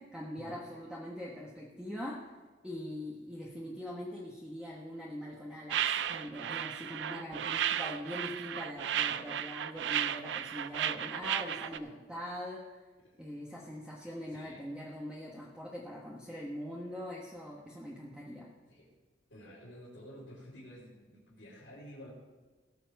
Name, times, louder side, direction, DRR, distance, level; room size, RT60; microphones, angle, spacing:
voice 1, 0.0-2.2 2.6-12.8 13.2-18.5, equal, 5° right, -4 dB, 1.2 m, -42 dB
sound 1, 5.7-11.8, right 10 dB, 70° right, 0.4 m, -34 dB
voice 2, 6.4-6.8 13.0-13.2 14.3-14.7 18.7-18.9 19.3-22.1, equal, 75° left, -9 dB, 3.3 m, -51 dB
18.0 x 7.0 x 4.7 m, 1.3 s
head